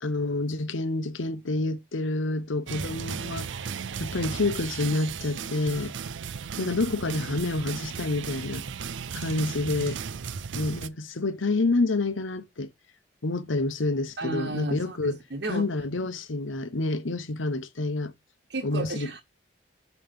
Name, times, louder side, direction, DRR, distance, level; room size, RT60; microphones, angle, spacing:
voice 1, 0.0-3.5 4.0-5.9 6.6-8.6 9.1-10.0 10.5-12.7 13.2-15.2 15.5-18.1 18.6-19.1, left 2 dB, 90° left, 0.9 m, -28 dB
sound 1, 2.7-10.9, right 6 dB, 75° right, 0.5 m, -35 dB
voice 2, 14.2-15.7 18.5-19.2, right 2 dB, 60° right, 1.1 m, -33 dB
9.1 x 3.1 x 5.3 m
head